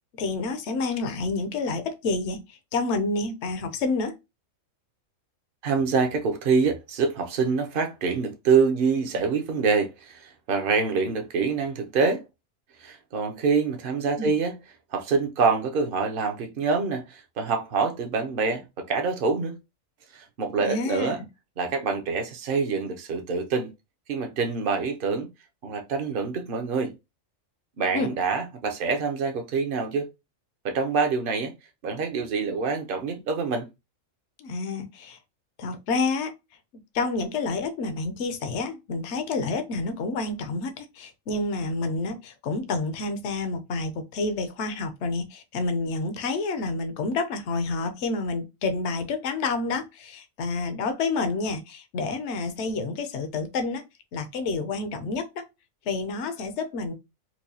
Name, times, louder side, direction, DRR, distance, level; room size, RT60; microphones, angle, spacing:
voice 1, 0.2-4.2 14.2-14.3 20.6-21.2 27.9-28.1 34.4-35.2 35.6-36.3 36.9-53.8 54.1-55.5 55.9-56.9, left 3 dB, 65° left, 0.9 m, -29 dB
voice 2, 5.6-12.2 12.8-14.5 14.9-19.6 20.1-21.2 21.6-23.7 24.1-25.3 25.6-26.9 27.8-30.1 30.6-31.5 31.8-33.7, right 5 dB, 50° right, 0.8 m, -26 dB
4.6 x 2.3 x 2.7 m
omnidirectional pair, 1.4 m